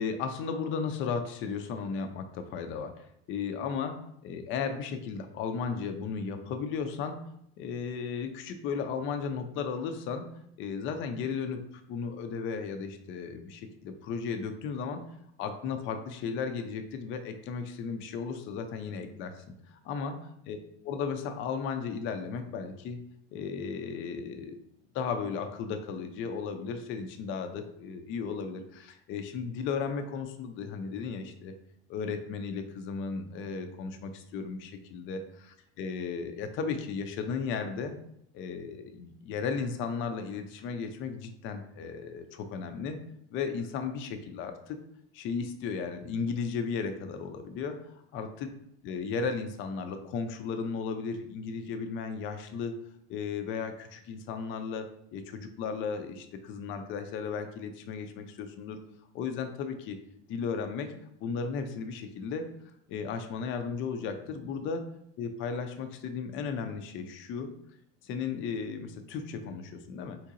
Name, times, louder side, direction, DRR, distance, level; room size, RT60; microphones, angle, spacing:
voice 1, 0.0-7.2 7.6-10.3 10.6-11.6 11.9-15.0 15.4-20.1 20.5-20.6 20.8-23.0 23.3-24.6 24.9-31.5 31.9-35.2 35.8-38.0 38.3-43.0 43.3-44.8 45.1-48.5 48.8-52.7 53.1-58.8 59.1-60.0 60.3-60.9 61.2-62.4 62.9-64.8 65.2-67.5 68.0-70.2, left 5 dB, 40° left, 7 dB, 0.4 m, -35 dB
3.7 x 2.8 x 2.5 m, 0.73 s
supercardioid pair, 110°, 33 cm